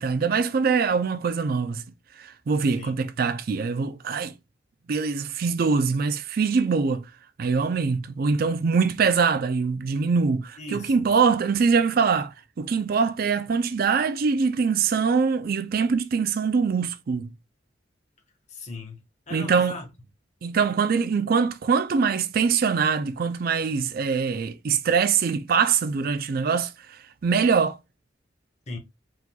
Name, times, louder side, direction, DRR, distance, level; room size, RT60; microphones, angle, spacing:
voice 1, 0.0-1.8 2.2-4.3 4.9-7.1 7.4-17.3 19.3-19.8 20.4-26.7 27.2-27.8, right 5 dB, 55° right, 0.4 m, -23 dB
voice 2, 10.6-11.1 18.5-19.9 28.7-28.8, left 2 dB, 40° left, 1.3 m, -38 dB
4.7 x 3.9 x 2.3 m
head